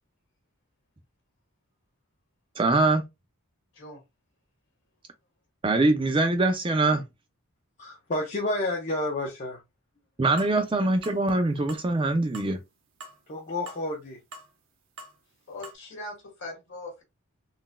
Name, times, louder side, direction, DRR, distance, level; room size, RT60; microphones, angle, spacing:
voice 1, 2.6-3.0 5.6-7.0 10.2-12.6, right 2 dB, 25° right, 0.4 m, -23 dB
voice 2, 7.8-9.6 13.3-14.2, left 2 dB, 35° left, 0.6 m, -30 dB
sound 1, 10.4-10.6 11.0-11.2 11.7-11.9 12.3-12.5 13.0-13.2 13.7-13.8 14.3-14.5 15.0-15.1 15.6-15.7, right 2 dB, 60° right, 0.8 m, -43 dB
voice 3, 15.5-17.0, left 2 dB, 55° left, 1.5 m, -40 dB
3.8 x 2.5 x 2.2 m
head